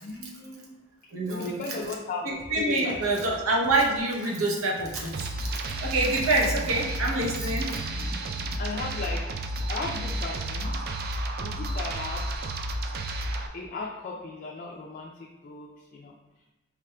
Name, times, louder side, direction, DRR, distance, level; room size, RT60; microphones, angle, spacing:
voice 1, 0.0-0.7 1.3-3.3 8.6-10.7 11.4-12.2 13.5-16.5, left 3 dB, 45° left, -2 dB, 0.4 m, -37 dB
voice 2, 1.1-1.6 2.5-5.5 5.8-7.8, right 2 dB, 85° right, -2 dB, 0.8 m, -26 dB
sound 1, 2.4-7.3, left 1 dB, 5° right, 0.6 m, -46 dB
sound 2, 5.1-13.5, right 1 dB, 50° right, 0.3 m, -31 dB
4.9 x 3.2 x 2.2 m, 1.1 s
head